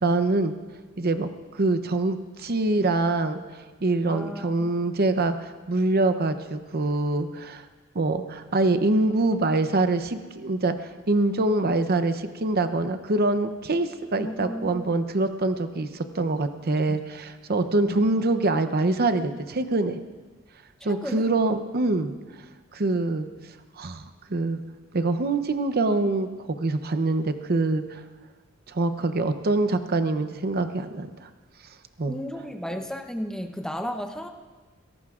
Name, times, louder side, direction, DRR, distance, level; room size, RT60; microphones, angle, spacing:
voice 1, 0.0-0.5 1.0-1.3 1.5-3.4 3.8-7.6 7.9-20.0 20.8-22.1 22.7-23.3 23.8-24.6 24.9-28.0 28.7-31.3 32.0-32.2, right 2 dB, 45° right, 9 dB, 0.7 m, -25 dB
voice 2, 4.1-5.0 14.2-15.0 16.9-17.0 17.8-18.0 20.9-21.3 32.1-34.3, equal, 5° left, 5 dB, 0.8 m, -34 dB
22.0 x 17.5 x 2.5 m, 1.3 s
head